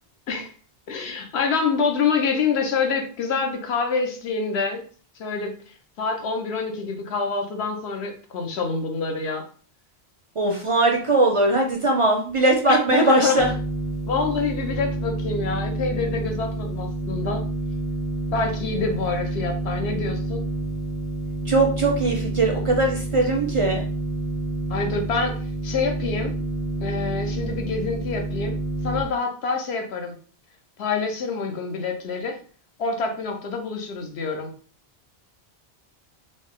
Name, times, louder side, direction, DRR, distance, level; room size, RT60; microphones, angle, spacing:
voice 1, 0.9-4.8 5.1-5.5 6.0-9.4 12.7-13.4 14.1-17.4 18.3-20.5 24.7-25.3 25.6-26.3 26.8-28.6 28.8-30.2 30.8-32.4 32.8-34.5, left 4 dB, 80° left, 4 dB, 1.0 m, -26 dB
voice 2, 10.4-13.5 21.5-23.8, right 2 dB, 45° right, 2 dB, 0.4 m, -20 dB
sound 1, 13.4-29.0, right 2 dB, 50° left, 0.8 m, -29 dB
3.8 x 2.1 x 3.5 m, 0.42 s
omnidirectional pair, 1.1 m